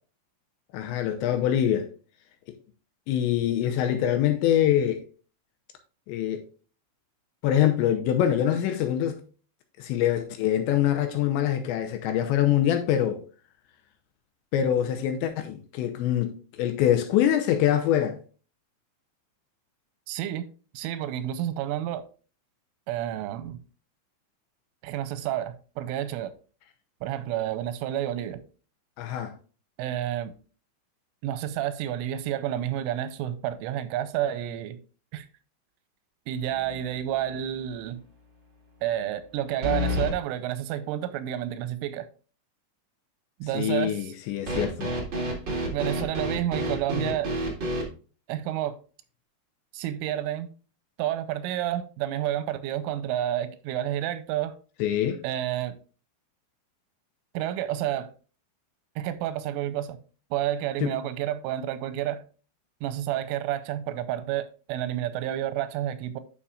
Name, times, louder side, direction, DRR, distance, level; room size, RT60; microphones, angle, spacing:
voice 1, 0.7-1.9 3.1-5.0 6.1-6.4 7.4-9.2 9.8-13.2 14.5-18.2 29.0-29.3 43.5-44.9 54.8-55.2 60.8-60.9, left 11 dB, 80° left, 2.8 m, -24 dB
voice 2, 20.1-20.5 20.7-22.0 22.9-23.6 24.8-26.3 27.0-28.4 29.8-30.3 31.2-34.8 35.1-35.3 36.3-38.0 38.8-42.1 43.4-44.1 45.7-47.4 48.3-48.8 49.7-50.5 51.0-54.6 55.2-55.7 57.3-58.1 59.0-60.0 60.3-62.2 62.8-66.2, right 12 dB, 90° right, 3.2 m, -30 dB
sound 1, 36.5-37.0 37.3-37.4 39.6-40.2 44.5-47.9, equal, 75° right, 1.0 m, -29 dB
11.0 x 5.6 x 2.4 m
omnidirectional pair, 5.6 m